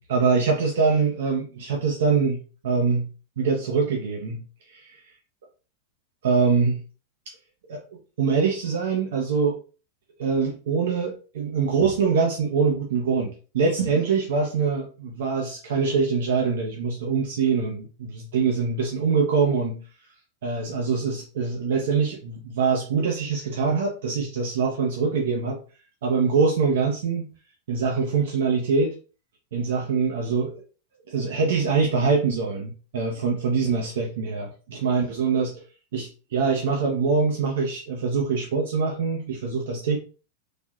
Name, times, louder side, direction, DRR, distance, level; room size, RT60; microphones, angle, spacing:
voice 1, 0.1-3.1 3.4-4.4 4.7-5.0 6.2-6.8 7.7-7.8 8.2-9.6 10.2-19.8 20.4-25.6 26.0-27.3 27.7-28.9 29.5-30.6 31.1-35.6 35.9-40.0, right 5 dB, 60° right, 1 dB, 0.5 m, -24 dB
3.3 x 2.6 x 2.3 m, 0.36 s
figure-of-eight pair, 90°, 0 cm